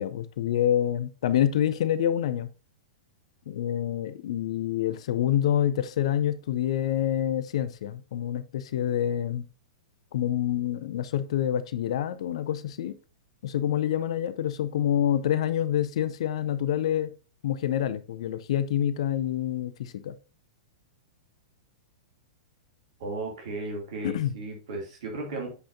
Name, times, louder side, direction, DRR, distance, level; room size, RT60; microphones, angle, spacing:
voice 1, 0.0-2.5 3.5-9.4 10.1-12.9 13.4-17.1 17.4-20.2 24.0-24.3, left 10 dB, 55° left, 0.6 m, -27 dB
voice 2, 23.0-25.5, right 2 dB, 50° right, 2.6 m, -35 dB
8.0 x 5.6 x 2.7 m
figure-of-eight pair, 100°, 4 cm